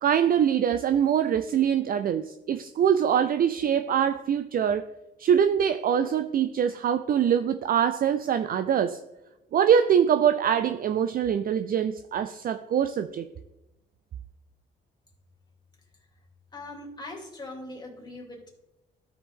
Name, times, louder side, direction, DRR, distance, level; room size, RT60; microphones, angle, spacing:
voice 1, 0.0-4.9 5.2-9.0 9.5-13.3, right 8 dB, 50° right, 0.4 m, -23 dB
voice 2, 16.5-18.5, left 2 dB, 20° left, 2.6 m, -41 dB
13.0 x 5.0 x 3.6 m
cardioid pair, 90°, 20 cm